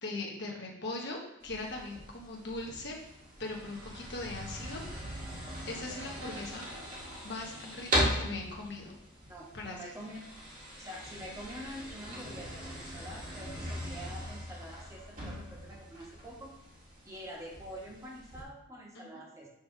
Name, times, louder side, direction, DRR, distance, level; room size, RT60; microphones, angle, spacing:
voice 1, 0.0-3.0 3.4-4.8 5.7-6.6 7.2-8.9 9.5-9.8 18.9-19.2, left 2 dB, 55° left, -1 dB, 1.4 m, -40 dB
sound 1, 1.4-18.4, equal, 40° right, 1.6 m, -39 dB
voice 2, 6.2-6.8 9.3-10.2 10.8-16.5 17.0-19.5, equal, 15° right, -3 dB, 1.3 m, -46 dB
6.2 x 3.3 x 5.9 m, 0.91 s
head